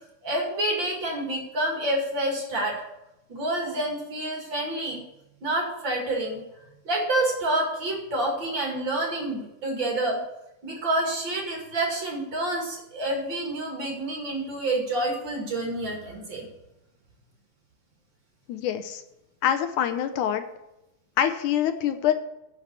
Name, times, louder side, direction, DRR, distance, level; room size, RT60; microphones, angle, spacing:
voice 1, 0.2-2.8 3.3-5.0 5.4-6.4 6.8-10.2 10.6-16.5, right 1 dB, 40° right, 0 dB, 2.5 m, -28 dB
voice 2, 18.5-19.0 19.4-20.4 21.2-22.1, left 10 dB, 80° left, 9 dB, 2.2 m, -25 dB
10.5 x 5.7 x 8.1 m, 0.88 s
omnidirectional pair, 3.6 m